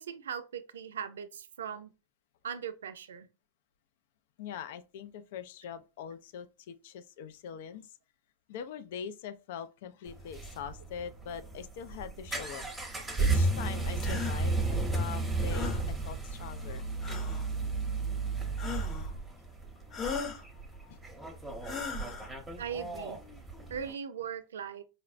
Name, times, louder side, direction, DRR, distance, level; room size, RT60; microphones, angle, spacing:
voice 1, 0.0-1.9 2.4-3.3 22.6-23.2 23.7-24.8, right 7 dB, 80° right, 0.4 m, -39 dB
voice 2, 4.4-8.0 8.5-12.7 13.0-14.6 14.9-16.9 17.6-17.7 20.2-20.3 20.5-21.0, left 8 dB, 65° left, 0.4 m, -43 dB
sound 1, 10.1-23.9, right 3 dB, 10° right, 0.8 m, -33 dB
sound 2, 14.0-14.4 15.5-15.8 17.0-17.5 18.6-19.1 19.9-20.4 21.6-22.3, left 6 dB, 30° left, 0.8 m, -37 dB
4.0 x 2.0 x 2.4 m
hypercardioid pair, 110°, 0 cm